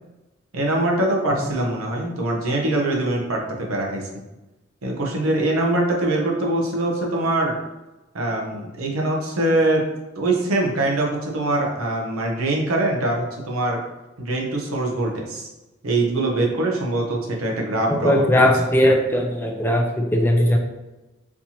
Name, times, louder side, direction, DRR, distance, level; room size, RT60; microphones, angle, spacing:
voice 1, 0.5-4.1 4.8-7.5 8.1-9.8 10.2-13.8 14.2-15.5 15.8-18.5, right 2 dB, 90° right, -1 dB, 0.8 m, -23 dB
voice 2, 17.9-20.6, equal, 10° left, 1 dB, 0.3 m, -19 dB
4.3 x 2.8 x 2.8 m, 1.1 s
head